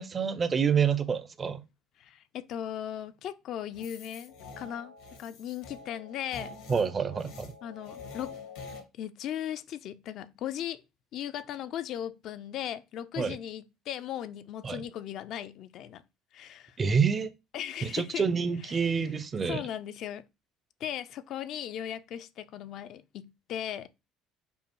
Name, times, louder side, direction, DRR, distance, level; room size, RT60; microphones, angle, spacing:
voice 1, 0.0-1.6 6.7-7.5 13.2-13.4 14.6-14.8 16.8-17.3 17.8-19.6, right 6 dB, 35° right, 0.5 m, -27 dB
voice 2, 2.0-4.9 5.2-6.5 7.6-8.4 8.9-10.8 11.1-16.0 16.3-16.8 17.5-18.3 18.6-19.0 19.4-20.2 20.8-23.9, left 10 dB, 60° left, 0.3 m, -37 dB
sound 1, 3.7-8.8, left 4 dB, 75° left, 0.9 m, -46 dB
5.3 x 2.0 x 3.0 m
hypercardioid pair, 65°, 0 cm